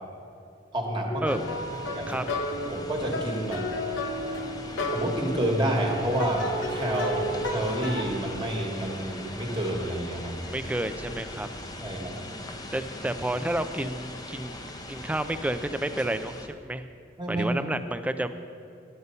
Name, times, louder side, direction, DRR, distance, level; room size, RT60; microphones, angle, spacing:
voice 1, 0.7-1.2 1.9-2.1 2.7-3.7 4.9-10.3 11.8-12.1 17.2-17.6, right 1 dB, 25° right, 0 dB, 1.4 m, -29 dB
sound 1, 1.1-8.0, left 1 dB, 70° left, 0.8 m, -32 dB
sound 2, 1.3-16.5, left 1 dB, 20° left, 0.7 m, -40 dB
voice 2, 10.4-11.5 12.7-14.5 14.9-16.8 17.3-18.3, right 1 dB, 5° right, 10 dB, 0.3 m, -30 dB
11.0 x 8.1 x 5.5 m, 2.5 s
head